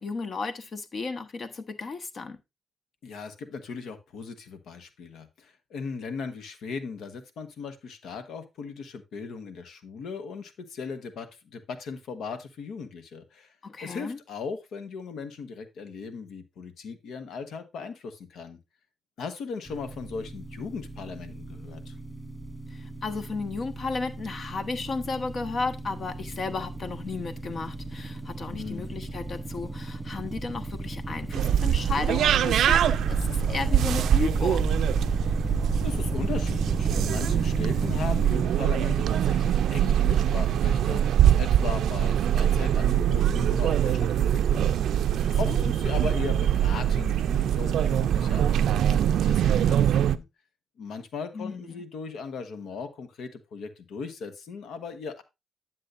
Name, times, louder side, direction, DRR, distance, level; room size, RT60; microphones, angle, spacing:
voice 1, 0.0-2.4 13.6-14.2 22.7-34.8 45.2-45.7 51.3-51.8, left 4 dB, 50° left, 1.2 m, -34 dB
voice 2, 3.0-13.5 13.8-18.6 19.2-21.9 28.5-28.9 35.8-44.7 45.4-50.2 50.8-55.2, left 5 dB, 80° left, 1.3 m, -38 dB
sound 1, 19.7-38.3, right 1 dB, 5° right, 1.6 m, -34 dB
sound 2, 31.3-50.2, right 10 dB, 80° right, 0.4 m, -23 dB
9.9 x 7.4 x 2.6 m
cardioid pair, 80°, 0 cm